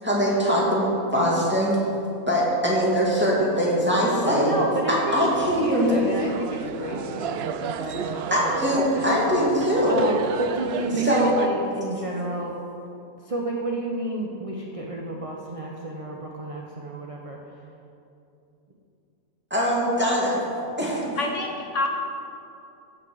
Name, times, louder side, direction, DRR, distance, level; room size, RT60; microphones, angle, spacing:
voice 1, 0.0-1.8 2.3-4.6 4.9-5.9 8.3-10.0 11.0-11.3 19.5-20.4 20.8-21.2, equal, 5° right, -5 dB, 2.4 m, -22 dB
voice 2, 4.2-5.1 5.6-8.8 9.9-12.5 13.2-17.4, right 2 dB, 30° right, -1 dB, 0.8 m, -30 dB
sound 1, 5.3-11.5, right 7 dB, 75° right, 0.5 m, -33 dB
voice 3, 21.1-21.9, left 2 dB, 60° left, 2 dB, 1.1 m, -28 dB
15.0 x 6.0 x 6.4 m, 2.7 s
omnidirectional pair, 1.6 m